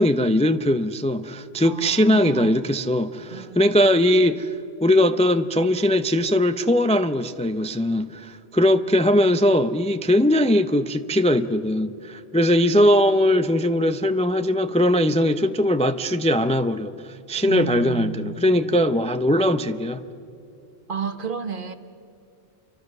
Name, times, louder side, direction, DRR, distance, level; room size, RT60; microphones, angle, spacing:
voice 1, 0.0-4.5 4.8-20.0, left 1 dB, 10° left, 9 dB, 0.4 m, -20 dB
voice 2, 1.6-2.6 3.3-4.0 17.5-18.8 20.9-21.7, right 7 dB, 55° right, 9 dB, 1.3 m, -32 dB
29.0 x 24.5 x 6.6 m, 2.5 s
omnidirectional pair, 1.1 m